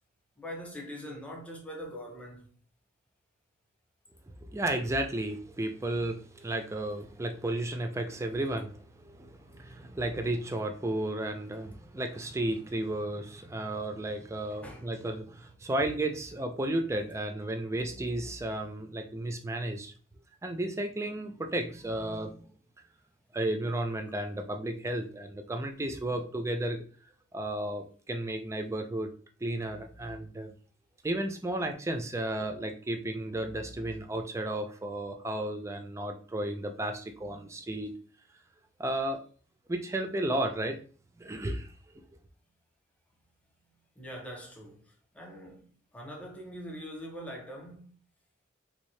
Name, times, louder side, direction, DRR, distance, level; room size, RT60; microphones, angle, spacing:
voice 1, 0.4-2.5 14.5-14.9 44.0-47.9, equal, 5° left, 0.7 m, -43 dB
voice 2, 4.4-19.9 20.4-22.4 23.3-26.8 27.3-29.1 29.4-30.5 31.0-37.9 38.8-39.2 39.7-40.8 41.2-41.7 41.9-42.0, right 1 dB, 15° right, 0.3 m, -33 dB
3.4 x 2.7 x 3.1 m
head